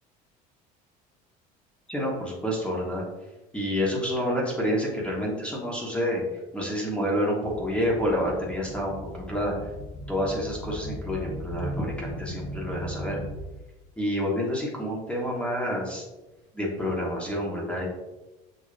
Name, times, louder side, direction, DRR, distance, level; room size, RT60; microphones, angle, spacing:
voice 1, 1.9-3.0 3.5-6.2 6.5-9.5 10.1-13.2 14.0-16.1 16.5-17.9, equal, 5° left, -3 dB, 1.3 m, -28 dB
sound 1, 7.5-13.7 14.3-14.5 15.4-15.5 16.3-16.4, right 1 dB, 35° left, 1.1 m, -38 dB
6.7 x 2.9 x 2.5 m, 1.1 s
cardioid pair, 120°, 18 cm